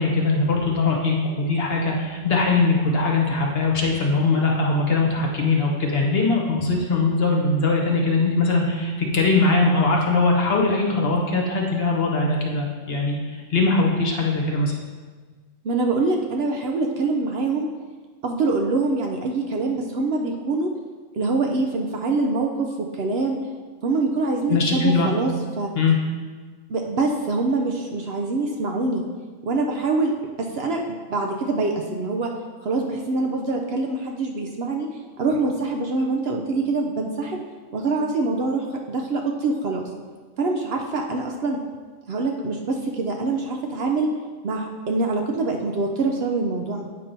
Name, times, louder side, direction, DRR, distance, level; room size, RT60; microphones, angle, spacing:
voice 1, 0.0-14.7 24.5-25.1 25.7-26.0, left 3 dB, 55° left, -1 dB, 1.1 m, -21 dB
voice 2, 15.6-17.7 18.2-20.7 21.1-23.4 23.8-25.7 26.7-29.0 29.4-30.1 30.4-30.8 31.1-32.3 32.6-34.9 35.2-37.4 37.7-39.9 40.4-41.6 42.1-44.1 44.4-46.9, right 3 dB, 60° right, 1 dB, 0.8 m, -24 dB
8.6 x 2.9 x 5.2 m, 1.4 s
omnidirectional pair, 1.3 m